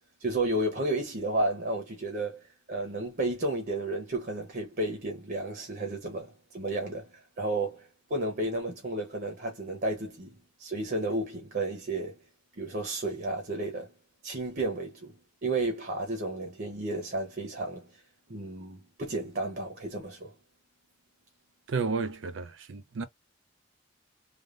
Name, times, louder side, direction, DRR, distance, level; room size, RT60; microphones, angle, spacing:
voice 1, 0.2-2.4 2.7-7.1 7.4-12.1 12.6-13.9 14.2-15.2 15.4-17.9 18.3-20.3, right 2 dB, 50° right, 0.9 m, -32 dB
voice 2, 21.7-23.0, right 4 dB, 85° right, 0.5 m, -32 dB
3.4 x 2.1 x 2.4 m
head